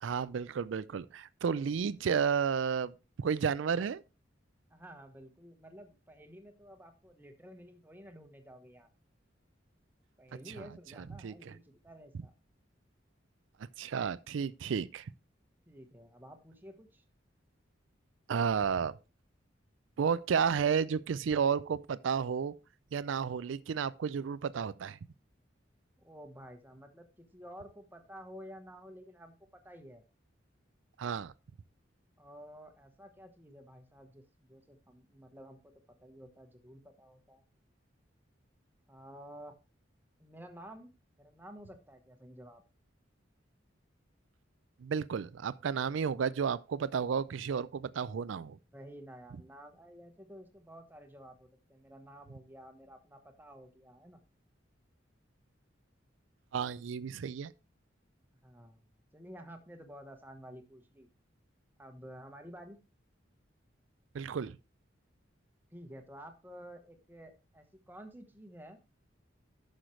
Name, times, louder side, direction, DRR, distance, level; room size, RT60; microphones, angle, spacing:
voice 1, 0.0-2.9 3.2-4.0 10.5-10.7 11.0-11.5 13.8-15.1 18.3-18.9 20.0-22.5 22.9-25.0 31.0-31.3 44.8-48.6 56.5-57.5 64.1-64.6, right 6 dB, 80° right, 0.4 m, -32 dB
voice 2, 4.7-8.9 10.2-12.3 15.7-17.0 26.0-29.4 29.6-30.0 32.2-35.6 36.0-37.4 38.9-39.6 40.2-40.9 41.2-42.6 48.7-54.2 58.4-58.8 59.1-61.1 61.8-62.8 65.7-68.8, equal, 10° right, 1.1 m, -51 dB
10.0 x 6.5 x 3.1 m
head